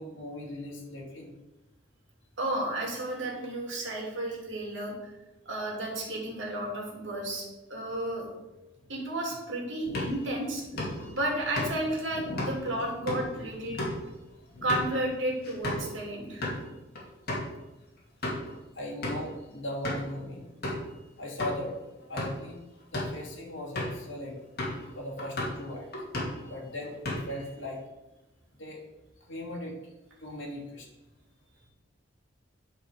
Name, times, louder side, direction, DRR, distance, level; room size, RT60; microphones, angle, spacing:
voice 1, 0.0-1.3 18.8-20.5 21.2-22.6 22.9-24.4 24.9-25.9 26.5-27.8 28.5-28.8 29.3-29.9 30.2-30.9, left 1 dB, 65° left, -4 dB, 2.4 m, -38 dB
voice 2, 2.4-5.1 5.5-8.3 8.9-10.6 11.1-13.8 14.6-16.6, right 1 dB, 70° right, -1 dB, 2.5 m, -32 dB
sound 1, 9.8-15.9 16.3-16.6 17.0-17.1 17.3-17.5 18.0-18.5 19.0-19.3 19.8-20.1 20.6-20.9 21.4-21.6 22.0-22.5 22.8-23.2 23.8-24.0 24.6-24.9 25.2-25.6 25.9-26.5 26.8-27.5, left 1 dB, 50° left, 2.5 m, -34 dB
10.0 x 4.8 x 4.9 m, 1.0 s
head